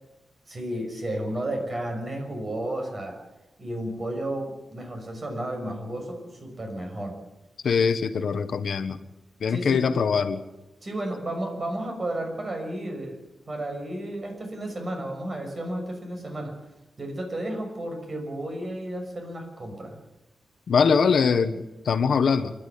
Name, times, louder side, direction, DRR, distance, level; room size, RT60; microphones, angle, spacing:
voice 1, 0.5-3.2 3.6-7.2 9.5-9.8 10.8-13.2 13.5-16.6 17.0-20.0, right 1 dB, 35° right, 3 dB, 6.1 m, -32 dB
voice 2, 7.6-9.0 9.4-10.4 20.7-22.5, left 5 dB, 70° left, 10 dB, 1.3 m, -22 dB
27.5 x 12.0 x 8.6 m, 0.99 s
wide cardioid pair, 130°, 0 cm